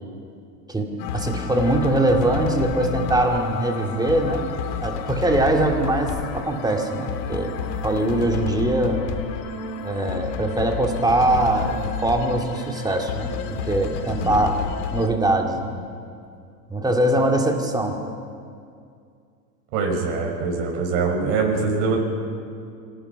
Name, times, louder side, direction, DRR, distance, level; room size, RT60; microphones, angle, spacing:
voice 1, 0.7-4.5 4.8-9.0 9.8-14.6 14.9-15.7 16.7-18.0, right 1 dB, 10° right, 3 dB, 2.3 m, -22 dB
sound 1, 1.0-15.1, left 7 dB, 75° left, 1.9 m, -30 dB
voice 2, 19.7-22.0, right 4 dB, 65° right, 1 dB, 5.7 m, -23 dB
25.5 x 18.0 x 5.7 m, 2.3 s
supercardioid pair, 120°, 49 cm